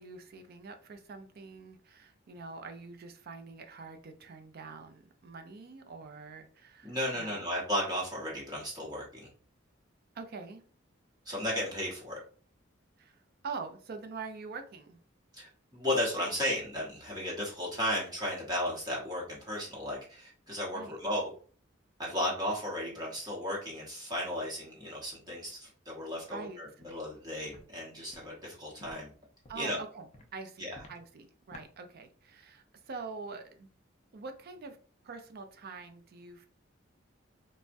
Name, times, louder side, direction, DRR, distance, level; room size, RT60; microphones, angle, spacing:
voice 1, 0.0-7.5 10.1-10.6 13.0-15.0 20.7-21.0 26.3-26.6 29.5-30.1 30.3-33.7 34.1-34.8 35.0-36.5, right 4 dB, 50° right, 7 dB, 0.4 m, -45 dB
voice 2, 6.8-9.3 11.3-12.2 15.3-21.3 22.0-29.1 29.6-29.8 30.6-30.8, left 1 dB, 20° right, -4 dB, 0.9 m, -34 dB
Walk footsteps, 26.8-27.0 27.4-27.6 28.1-28.3 28.8-28.9 29.4-29.7 30.1-30.3 30.7-31.0 31.5-31.7, left 1 dB, 35° left, 0.5 m, -51 dB
3.3 x 2.1 x 2.5 m, 0.43 s
head